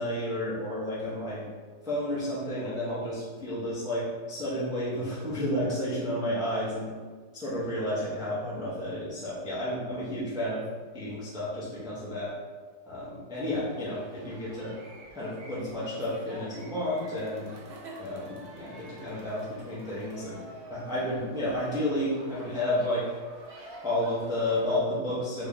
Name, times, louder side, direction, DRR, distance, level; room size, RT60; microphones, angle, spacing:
voice 1, 0.0-1.5 1.8-6.9 7.3-10.6 10.9-12.3 12.9-14.7 15.1-17.5 18.0-20.4 20.7-23.1 23.8-25.5, left 1 dB, 5° right, -9 dB, 0.3 m, -31 dB
sound 1, 13.3-24.8, right 1 dB, 85° right, 0.5 m, -48 dB
3.2 x 2.3 x 3.7 m, 1.5 s
omnidirectional pair, 1.7 m